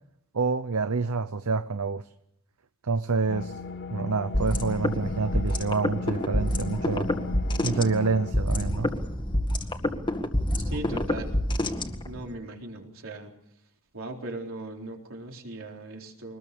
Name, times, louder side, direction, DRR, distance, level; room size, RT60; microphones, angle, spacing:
voice 1, 0.3-2.0 2.8-3.6 3.9-7.1 7.6-8.9, right 4 dB, 80° right, 0.8 m, -27 dB
sound 1, 3.3-8.3, left 3 dB, 55° left, 3.0 m, -37 dB
sound 2, 4.3-12.3, left 1 dB, 20° left, 1.9 m, -27 dB
voice 2, 10.6-11.4 12.0-13.3 13.9-16.4, right 2 dB, 65° right, 4.1 m, -38 dB
24.0 x 20.0 x 7.0 m
head